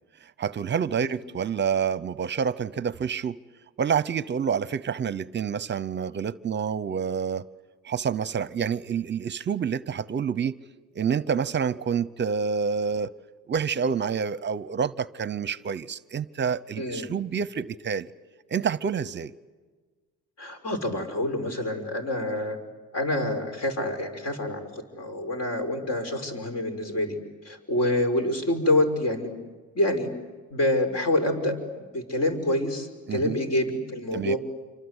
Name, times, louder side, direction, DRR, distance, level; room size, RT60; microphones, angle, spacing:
voice 1, 0.4-3.4 3.8-7.4 7.8-10.5 10.9-13.1 13.5-18.1 18.5-19.3 33.1-33.4 34.1-34.4, right 7 dB, 35° right, 0.8 m, -28 dB
voice 2, 16.8-17.1 20.4-22.6 22.9-27.2 27.4-29.3 29.7-30.1 30.5-34.4, left 1 dB, 50° left, 5.4 m, -27 dB
28.0 x 25.0 x 8.1 m
cardioid pair, 115°, 32 cm